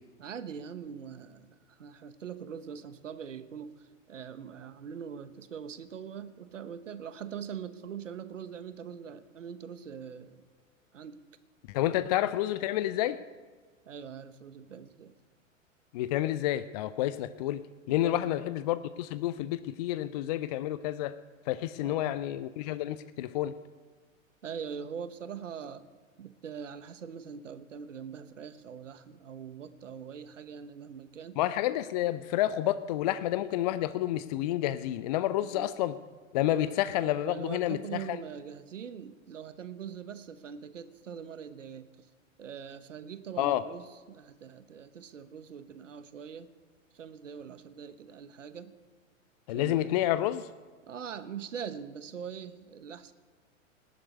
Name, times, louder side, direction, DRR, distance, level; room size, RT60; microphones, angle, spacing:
voice 1, 0.2-10.5 10.9-11.2 13.9-15.2 17.9-18.4 21.8-22.2 24.4-25.8 26.2-31.4 35.4-35.7 36.5-42.1 42.4-46.5 46.9-48.7 49.5-49.9 50.9-53.1, right 7 dB, 65° right, 13 dB, 1.2 m, -42 dB
voice 2, 11.7-13.2 15.9-17.6 17.9-21.2 21.5-23.5 31.4-35.9 36.3-38.2 43.4-43.6 49.5-50.5, left 13 dB, 30° left, 14 dB, 0.5 m, -29 dB
18.5 x 7.8 x 9.7 m, 1.4 s
figure-of-eight pair, 100°, 40 cm